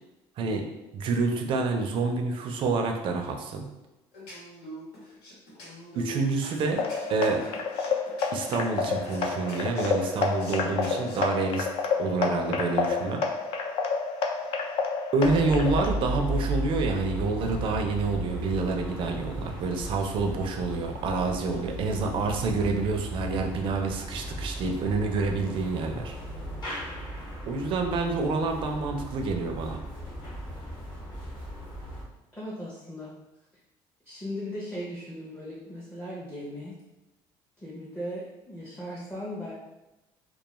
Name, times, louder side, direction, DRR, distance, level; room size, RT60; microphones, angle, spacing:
voice 1, 0.9-3.6 6.0-7.4 8.3-11.7 12.0-13.2 15.1-26.1 27.5-29.8, right 3 dB, 50° right, 4 dB, 0.4 m, -28 dB
sound 1, 4.1-11.2, equal, 90° left, 1.2 m, -44 dB
sound 2, 6.8-15.9, left 4 dB, 55° left, 0.4 m, -29 dB
sound 3, 15.2-32.0, right 1 dB, 40° left, 1.0 m, -35 dB
voice 2, 32.4-33.1 34.0-36.8 37.6-39.5, equal, 10° left, -7 dB, 0.6 m, -37 dB
2.3 x 2.2 x 3.0 m, 1.0 s
cardioid pair, 120°, 11 cm